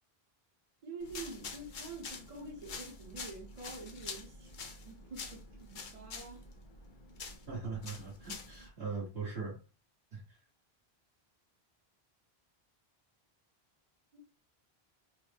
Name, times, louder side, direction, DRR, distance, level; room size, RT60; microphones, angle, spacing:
voice 1, 0.8-6.4 14.1-14.2, right 3 dB, 40° right, 0.9 m, -47 dB
sound 1, 1.0-8.7, left 4 dB, 55° left, 0.8 m, -47 dB
voice 2, 7.5-9.6 10.1-10.4, right 4 dB, 70° right, 1.5 m, -40 dB
3.9 x 2.0 x 3.3 m
omnidirectional pair, 1.1 m